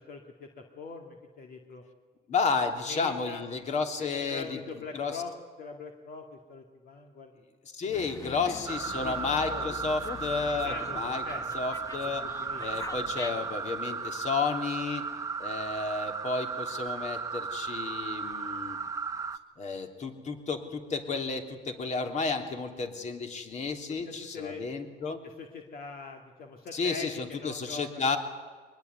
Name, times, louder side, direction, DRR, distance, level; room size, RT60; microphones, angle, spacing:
voice 1, 0.0-1.8 2.9-3.4 4.0-5.3 5.6-7.3 7.8-8.6 9.0-9.2 9.5-9.8 10.6-11.4 12.2-12.7 23.9-24.7 25.2-28.2, left 5 dB, 60° left, 3 dB, 2.4 m, -42 dB
voice 2, 2.3-4.6 4.9-5.2 7.7-11.2 11.5-12.3 12.6-15.0 15.4-18.8 19.6-25.2 26.7-28.2, left 4 dB, 45° left, 5 dB, 3.3 m, -32 dB
Dog, 7.9-13.6, left 4 dB, 20° left, 1.1 m, -44 dB
sound 1, 8.7-19.4, right 5 dB, 20° right, 1.2 m, -35 dB
23.5 x 20.5 x 9.5 m, 1.5 s
cardioid pair, 110°, 17 cm